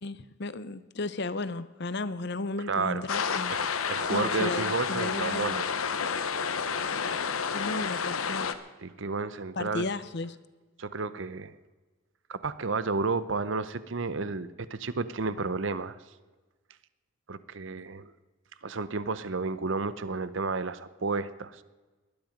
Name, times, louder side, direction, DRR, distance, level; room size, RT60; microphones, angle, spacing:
voice 1, 0.0-3.6 4.1-5.6 7.5-8.5 9.6-10.4, left 2 dB, 50° left, 14 dB, 0.8 m, -34 dB
voice 2, 2.7-3.1 3.5-5.6 8.8-9.9 10.8-11.5 12.3-16.0 17.3-18.1 18.6-21.6, right 4 dB, 60° right, 15 dB, 0.7 m, -32 dB
sound 1, 3.1-8.5, left 6 dB, 85° left, 1.0 m, -30 dB
19.0 x 12.0 x 5.2 m, 1.2 s
head